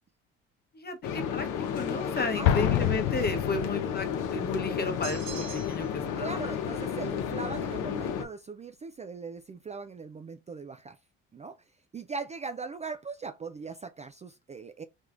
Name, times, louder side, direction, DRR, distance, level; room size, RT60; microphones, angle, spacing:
voice 1, 0.7-6.4, left 3 dB, 30° left, 1.1 m, -33 dB
sound 1, 1.0-8.2, left 7 dB, 70° left, 0.9 m, -32 dB
voice 2, 2.1-2.5 6.2-11.0 11.3-11.6 11.9-14.8, right 4 dB, 20° right, 0.4 m, -40 dB
Explosion, 2.4-4.2, left 11 dB, 90° left, 0.5 m, -27 dB
sound 2, 5.0-6.0, right 7 dB, 70° right, 1.6 m, -42 dB
3.5 x 3.2 x 2.5 m
hypercardioid pair, 60°, 32 cm